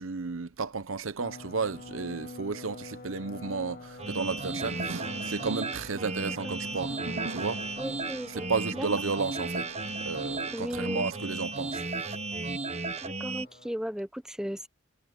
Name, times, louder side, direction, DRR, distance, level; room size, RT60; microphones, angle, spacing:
voice 1, 0.0-7.0 7.3-7.6 8.3-11.8, right 4 dB, 65° right, 0.9 m, -33 dB
sound 1, 1.2-13.7, left 3 dB, 45° left, 1.6 m, -47 dB
sound 2, 4.0-13.4, right 3 dB, 30° right, 1.3 m, -35 dB
sound 3, 4.0-11.1, right 2 dB, 85° right, 2.8 m, -45 dB
voice 2, 7.8-8.5 8.7-8.9 10.5-11.1 13.0-14.7, equal, 5° right, 1.1 m, -35 dB
head